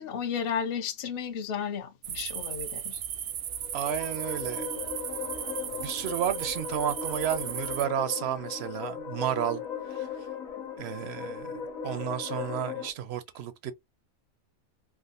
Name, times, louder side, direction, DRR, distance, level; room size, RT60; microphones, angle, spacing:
voice 1, 0.0-3.0, left 7 dB, 55° left, 0.7 m, -33 dB
sound 1, 2.0-7.9, right 9 dB, 85° right, 1.1 m, -36 dB
sound 2, 3.5-12.9, left 7 dB, 70° left, 1.3 m, -38 dB
voice 2, 3.7-4.7 5.8-9.6 9.9-10.1 10.8-11.5 11.8-13.7, right 9 dB, 65° right, 0.6 m, -32 dB
3.5 x 2.1 x 2.5 m
omnidirectional pair, 1.5 m